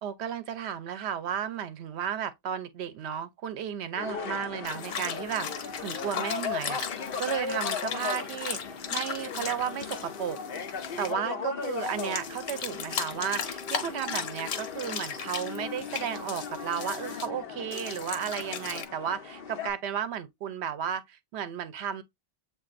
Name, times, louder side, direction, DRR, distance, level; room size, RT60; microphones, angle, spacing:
voice 1, 0.0-8.6 8.9-10.4 11.0-22.0, right 8 dB, 85° right, 0.9 m, -33 dB
sound 1, 4.0-19.7, left 6 dB, 65° left, 0.8 m, -38 dB
sound 2, 4.6-11.1 11.6-17.3 17.7-18.9, left 7 dB, 85° left, 1.0 m, -37 dB
7.4 x 2.5 x 2.4 m
omnidirectional pair, 1.1 m